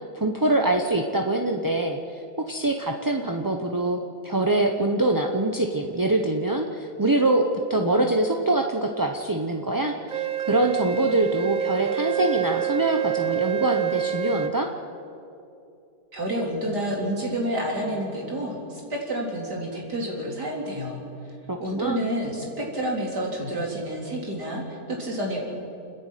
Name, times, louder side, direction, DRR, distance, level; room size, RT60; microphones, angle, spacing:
voice 1, 0.1-2.0 2.5-7.4 7.7-14.7 21.5-22.0, right 2 dB, 20° right, 3 dB, 0.6 m, -24 dB
Wind instrument woodwind instrument, 10.1-14.5, right 12 dB, 65° right, 0.4 m, -27 dB
voice 2, 16.1-21.0 21.6-25.4, right 1 dB, 80° right, -2 dB, 4.4 m, -29 dB
29.5 x 10.5 x 9.2 m, 2.7 s
omnidirectional pair, 1.7 m